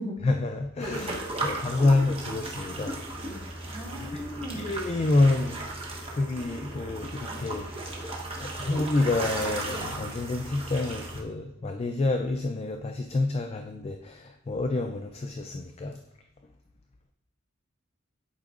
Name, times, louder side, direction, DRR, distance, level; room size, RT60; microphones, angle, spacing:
voice 1, 0.2-3.0 4.1-4.2 4.5-5.6 6.2-7.7 8.4-16.0, left 2 dB, 30° left, 5 dB, 0.4 m, -28 dB
sound 1, 0.8-11.2, right 2 dB, 30° right, 1.0 m, -36 dB
voice 2, 3.7-4.7, equal, 15° left, -6 dB, 2.1 m, -37 dB
11.0 x 4.8 x 2.5 m, 0.83 s
head